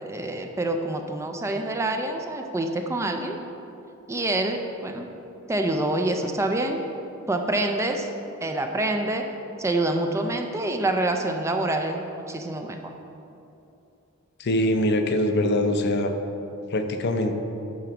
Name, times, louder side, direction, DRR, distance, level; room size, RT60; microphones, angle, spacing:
voice 1, 0.0-3.4 4.1-5.1 5.5-6.8 7.3-8.1 8.4-9.3 9.6-12.8, right 2 dB, 15° right, 4 dB, 0.4 m, -26 dB
voice 2, 14.4-16.1 16.7-17.3, left 1 dB, 50° left, 6 dB, 0.6 m, -23 dB
9.2 x 3.9 x 5.8 m, 2.8 s
head